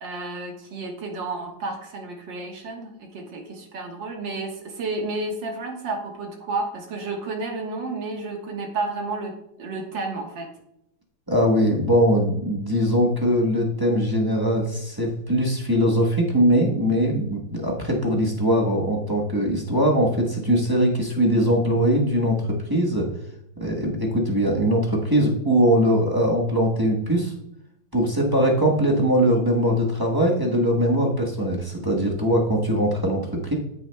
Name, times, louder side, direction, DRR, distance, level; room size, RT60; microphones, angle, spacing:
voice 1, 0.0-10.5, right 3 dB, 65° right, 2 dB, 2.0 m, -31 dB
voice 2, 11.3-23.1 23.6-27.3 27.9-33.5, equal, 20° right, -2 dB, 0.6 m, -21 dB
13.5 x 6.2 x 2.2 m, 0.79 s
omnidirectional pair, 2.3 m